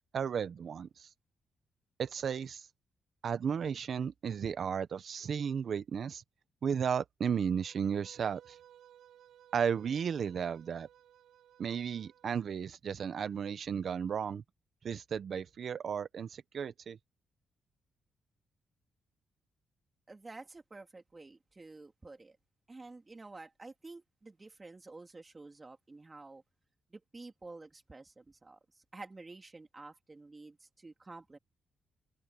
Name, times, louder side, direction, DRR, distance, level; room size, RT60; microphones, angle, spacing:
voice 1, 0.1-1.1 2.0-2.7 3.2-6.2 6.6-8.6 9.5-10.9 11.6-14.4 14.8-17.0, right 7 dB, 55° right, 1.3 m, -34 dB
Bowed string instrument, 7.5-12.5, right 11 dB, 85° right, 5.0 m, -60 dB
voice 2, 20.1-22.4 22.7-26.4 26.9-31.4, right 3 dB, 20° right, 3.5 m, -50 dB
open air
cardioid pair, 105°, 0 cm